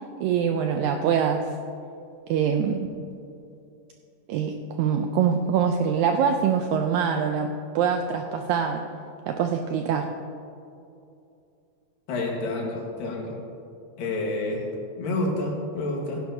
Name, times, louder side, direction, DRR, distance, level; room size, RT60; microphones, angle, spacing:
voice 1, 0.2-1.5 2.3-2.9 4.3-7.5 7.8-8.8 9.3-10.1, right 7 dB, 85° right, 5 dB, 1.7 m, -24 dB
voice 2, 12.1-13.3 14.0-14.6 15.0-16.2, left 2 dB, 85° left, -1 dB, 3.3 m, -28 dB
15.5 x 10.5 x 2.7 m, 2.6 s
omnidirectional pair, 3.9 m